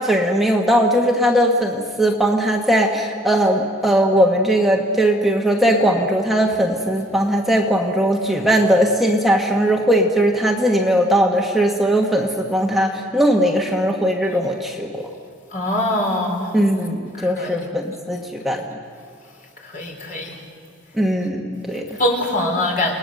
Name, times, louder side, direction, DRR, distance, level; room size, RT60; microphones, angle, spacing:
voice 1, 0.0-15.1 16.5-18.6 20.9-21.8, equal, ahead, 0 dB, 1.3 m, -19 dB
voice 2, 15.5-16.5 17.2-17.6 19.7-20.3 22.0-23.0, left 1 dB, 45° left, 0 dB, 4.1 m, -22 dB
29.0 x 20.0 x 6.6 m, 2.2 s
head